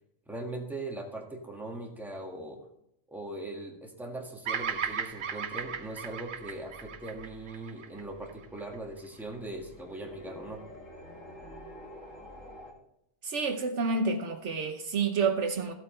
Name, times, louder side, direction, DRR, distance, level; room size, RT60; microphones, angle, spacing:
voice 1, 0.3-2.6 3.1-10.6, right 2 dB, ahead, 1.7 m, -40 dB
Bird vocalization bird call bird song, 4.4-8.7, right 6 dB, 50° right, 0.8 m, -36 dB
sound 1, 5.6-12.7, equal, 85° left, 2.3 m, -50 dB
voice 2, 13.2-15.7, right 4 dB, 70° right, 1.2 m, -29 dB
14.5 x 8.2 x 3.3 m
omnidirectional pair, 1.3 m